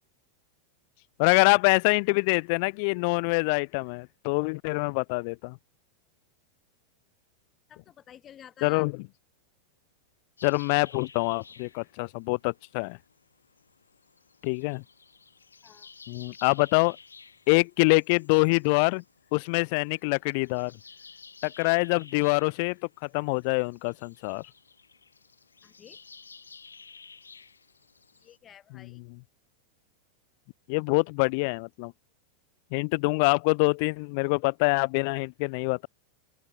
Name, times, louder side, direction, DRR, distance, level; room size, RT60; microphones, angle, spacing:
voice 1, 1.2-5.6 8.6-8.9 10.4-13.0 14.4-14.8 16.1-17.0 17.5-19.0 19.3-20.7 21.4-24.4 28.7-29.0 30.7-31.9 32.7-35.9, left 32 dB, 45° left, 0.7 m, -25 dB
voice 2, 7.7-8.9 15.6-15.9 25.6-26.0 28.2-29.0, left 10 dB, 25° left, 1.0 m, -51 dB
sound 1, 10.4-28.4, left 5 dB, 75° left, 4.0 m, -53 dB
figure-of-eight pair, 90°, 0 cm